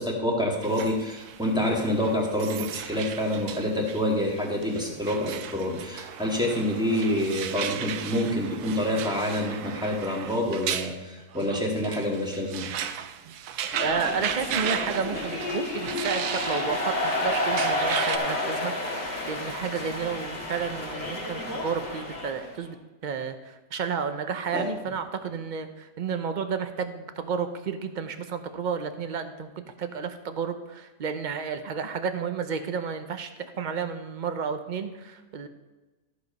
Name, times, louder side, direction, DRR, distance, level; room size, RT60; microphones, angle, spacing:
voice 1, 0.0-12.7 24.5-24.7, left 1 dB, 5° right, -2 dB, 1.8 m, -27 dB
sound 1, 0.6-18.2, right 9 dB, 80° right, 1.2 m, -36 dB
sound 2, 13.7-22.5, left 1 dB, 40° left, 1.9 m, -30 dB
voice 2, 13.8-22.8 23.0-35.5, right 6 dB, 55° right, 8 dB, 0.5 m, -32 dB
14.0 x 4.9 x 5.3 m, 1.2 s
omnidirectional pair, 1.6 m